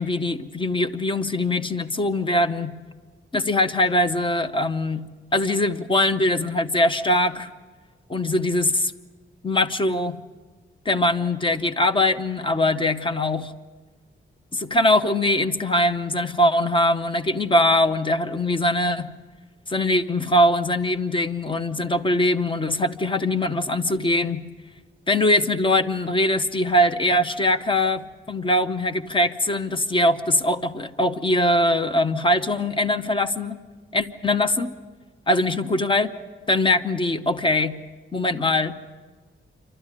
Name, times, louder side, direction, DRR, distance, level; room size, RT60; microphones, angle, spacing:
voice 1, 0.0-2.7 3.3-5.0 5.3-7.5 8.1-8.9 9.4-10.2 10.8-13.5 14.5-19.1 19.7-24.4 25.1-33.6 33.9-34.7 35.3-36.1 36.5-37.8 38.1-38.7, left 1 dB, 25° left, 10 dB, 0.8 m, -22 dB
27.5 x 12.0 x 9.9 m, 1.4 s
wide cardioid pair, 135°, 21 cm